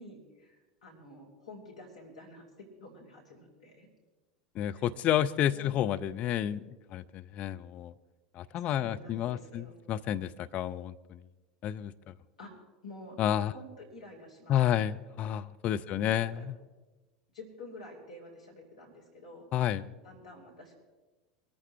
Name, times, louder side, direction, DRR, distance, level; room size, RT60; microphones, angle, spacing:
voice 1, 0.0-3.9 4.7-4.9 5.5-5.9 8.6-9.7 12.4-12.5 12.8-13.2 13.5-14.8 15.9-16.5 17.3-19.5 20.0-20.7, left 1 dB, 70° left, -2 dB, 4.6 m, -49 dB
voice 2, 4.6-7.9 8.4-11.2 11.6-12.1 13.2-13.5 14.5-16.5 19.5-19.8, left 11 dB, 35° left, 10 dB, 0.6 m, -30 dB
22.5 x 14.0 x 3.3 m, 1.2 s
figure-of-eight pair, 80°, 4 cm